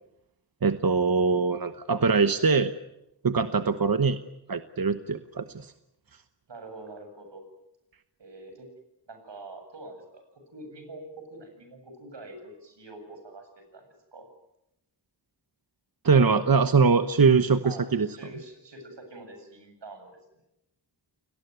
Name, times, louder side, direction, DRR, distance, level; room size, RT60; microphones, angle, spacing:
voice 1, 0.6-2.7 3.2-4.2 4.5-5.7 16.0-18.1, right 5 dB, 55° right, 10 dB, 1.2 m, -22 dB
voice 2, 3.4-3.9 6.5-7.4 8.2-8.7 9.1-10.2 10.5-13.8 14.1-14.3 17.6-20.1, right 2 dB, 90° right, 6 dB, 7.9 m, -45 dB
30.0 x 19.0 x 9.5 m, 0.87 s
wide cardioid pair, 75°, 42 cm